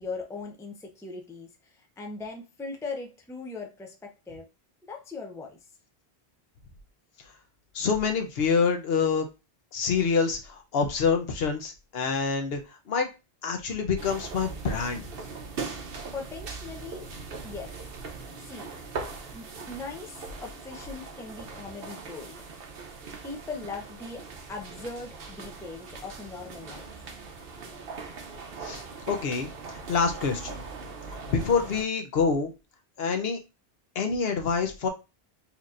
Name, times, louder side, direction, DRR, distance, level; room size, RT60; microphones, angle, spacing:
voice 1, 0.0-4.5 4.9-5.6 16.1-17.1 17.4-17.8 18.5-18.7 19.3-22.4 23.2-27.0, left 3 dB, 5° left, 2 dB, 0.5 m, -40 dB
voice 2, 7.7-9.3 9.7-12.6 12.9-13.1 13.4-15.0 28.6-30.6 31.3-32.5 33.0-33.4 34.0-34.9, left 5 dB, 75° left, 5 dB, 0.9 m, -26 dB
sound 1, 14.0-31.8, right 4 dB, 70° right, 0.9 m, -40 dB
4.4 x 2.9 x 2.5 m, 0.27 s
omnidirectional pair, 1.0 m